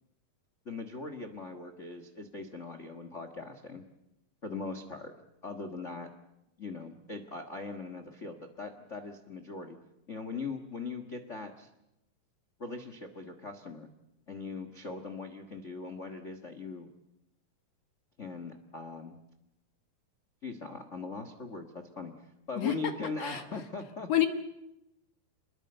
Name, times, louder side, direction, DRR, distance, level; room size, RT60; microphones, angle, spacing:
voice 1, 0.6-3.8 4.4-5.1 5.4-6.1 6.6-9.8 10.1-11.7 12.6-13.9 14.3-16.9 18.2-19.2 20.4-24.2, left 3 dB, 80° left, 7 dB, 0.6 m, -40 dB
voice 2, 22.6-22.8 23.2-23.4 24.1-24.3, left 13 dB, 55° left, 8 dB, 2.0 m, -26 dB
25.5 x 21.5 x 7.9 m, 0.89 s
omnidirectional pair, 4.1 m